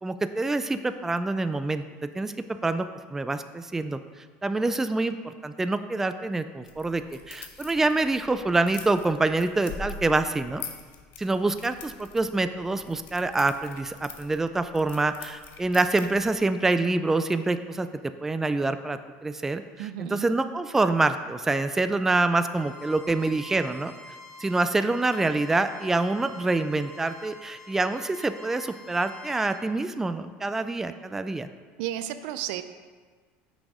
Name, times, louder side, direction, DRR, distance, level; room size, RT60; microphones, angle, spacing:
voice 1, 0.0-1.8 2.1-2.3 2.6-4.0 4.4-10.6 11.2-17.9 18.2-23.9 24.4-31.5, right 2 dB, 10° right, 10 dB, 0.3 m, -26 dB
sound 1, 6.7-16.4, left 5 dB, 55° left, 0.9 m, -44 dB
voice 2, 19.8-20.3 31.8-32.6, right 12 dB, 80° right, 11 dB, 0.5 m, -32 dB
Bowed string instrument, 22.5-29.6, left 3 dB, 20° left, 1.4 m, -47 dB
6.2 x 6.2 x 4.8 m, 1.5 s
supercardioid pair, 130°, 4 cm